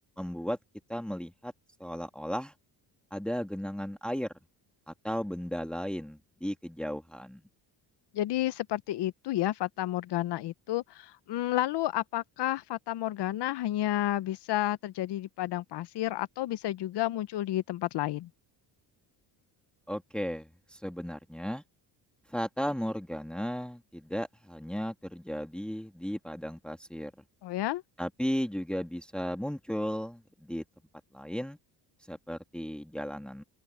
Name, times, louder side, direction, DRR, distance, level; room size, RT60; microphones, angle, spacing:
voice 1, 0.2-0.6 0.9-1.5 1.8-2.5 3.1-4.3 4.9-7.4 19.9-21.6 22.3-27.1 28.0-30.6 31.1-31.6 32.1-33.4, equal, ahead, 2.0 m, -35 dB
voice 2, 8.1-18.3 27.4-27.8, left 14 dB, 65° left, 1.0 m, -31 dB
open air
cardioid pair, 85°, 43 cm